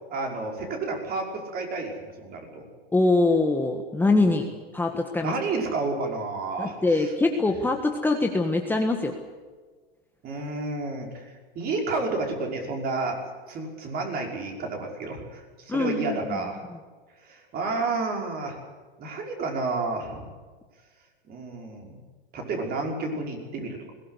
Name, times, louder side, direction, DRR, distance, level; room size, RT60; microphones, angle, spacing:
voice 1, 0.1-2.7 4.0-4.4 5.2-7.1 10.2-13.2 13.5-16.6 17.2-18.6 19.0-20.3 21.3-22.0 22.3-23.9, right 3 dB, 30° right, 2 dB, 5.7 m, -31 dB
voice 2, 2.9-4.4 4.7-5.3 6.6-9.2 15.7-16.4 16.7-16.8, left 2 dB, 5° left, 3 dB, 1.5 m, -23 dB
21.5 x 18.0 x 8.3 m, 1.4 s
hypercardioid pair, 125°, 29 cm